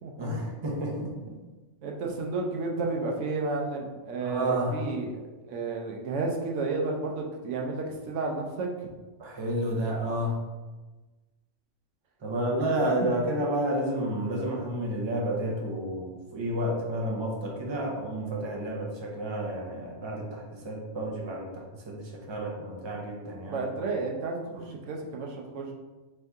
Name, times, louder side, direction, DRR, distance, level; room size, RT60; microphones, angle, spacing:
voice 1, 0.2-1.3 4.2-4.8 9.2-10.4 12.2-23.7 24.5-24.6, right 1 dB, 30° right, -2 dB, 0.6 m, -31 dB
voice 2, 1.8-5.2 5.5-8.7 13.0-13.1 23.4-25.7, right 3 dB, 80° right, 0 dB, 1.0 m, -32 dB
4.4 x 2.7 x 3.4 m, 1.2 s
omnidirectional pair, 1.3 m